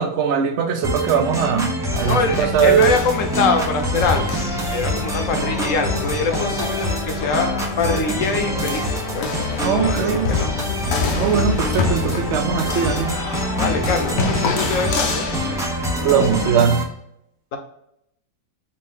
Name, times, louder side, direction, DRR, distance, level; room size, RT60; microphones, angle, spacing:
voice 1, 0.0-2.9 9.6-10.3 11.1-13.1 16.0-16.8, right 8 dB, 65° right, 6 dB, 0.7 m, -20 dB
sound 1, 0.8-16.8, equal, 5° right, 0.4 m, -26 dB
sound 2, 1.9-16.5, left 4 dB, 85° left, 1.5 m, -27 dB
voice 2, 2.1-4.4 4.7-7.5 7.8-9.3 9.7-10.5 13.5-15.4, left 4 dB, 60° left, 5 dB, 1.1 m, -23 dB
5.5 x 2.7 x 3.5 m, 0.75 s
omnidirectional pair, 1.8 m